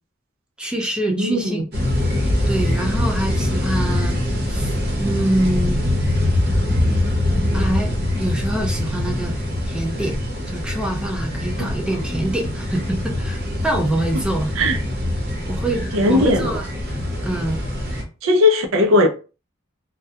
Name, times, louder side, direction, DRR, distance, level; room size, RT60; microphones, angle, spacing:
voice 1, 0.6-1.7 2.5-4.2 4.5-4.7 5.0-5.8 7.5-7.9 8.2-9.4 9.6-10.2 10.5-14.5 15.5-16.7 17.2-17.6, right 1 dB, 5° right, 0.4 m, -25 dB
voice 2, 1.1-1.6 11.6-11.7 14.6-14.8 15.9-16.5 18.2-19.1, left 2 dB, 80° right, 0.5 m, -17 dB
sound 1, 1.7-18.0, left 1 dB, 55° right, 0.8 m, -23 dB
2.3 x 2.2 x 2.7 m
head